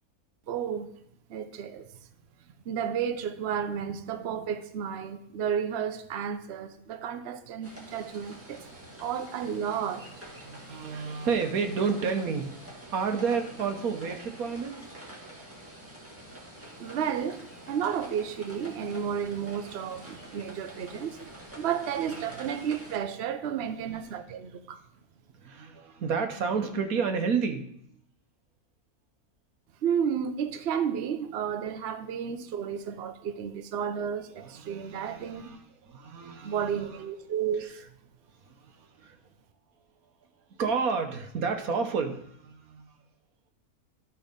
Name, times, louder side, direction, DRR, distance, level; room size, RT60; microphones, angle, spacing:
voice 1, 0.5-0.9 1.3-1.9 2.7-8.6 9.0-10.1 16.8-17.4 17.7-21.2 21.6-24.8 29.8-35.5 36.4-37.8, right 8 dB, 55° right, 0.8 m, -32 dB
sound 1, 7.6-23.0, right 1 dB, 10° right, 1.7 m, -47 dB
voice 2, 10.4-14.8 23.9-24.2 25.4-27.7 34.4-36.9 38.5-39.2 40.5-42.9, right 5 dB, 70° right, 1.4 m, -31 dB
12.5 x 4.5 x 5.2 m
omnidirectional pair, 1.6 m